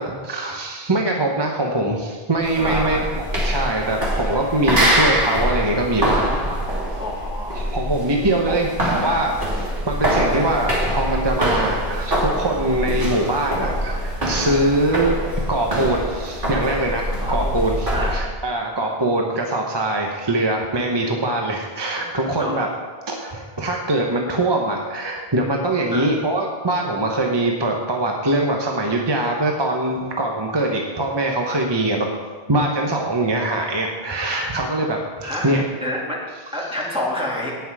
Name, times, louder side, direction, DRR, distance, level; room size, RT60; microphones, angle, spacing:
voice 1, 0.0-6.6 7.5-22.7 23.1-32.1 32.5-35.6, right 1 dB, 25° right, 1 dB, 1.0 m, -23 dB
sound 1, 2.4-18.2, right 1 dB, 55° right, 2.7 m, -24 dB
voice 2, 2.5-3.1 7.0-7.6 8.5-8.6 17.2-17.6 17.9-18.2 22.4-22.6 25.9-26.1 35.2-35.5 35.8-37.6, left 1 dB, 5° right, -5 dB, 2.3 m, -28 dB
17.5 x 5.9 x 4.8 m, 1.5 s
omnidirectional pair, 1.0 m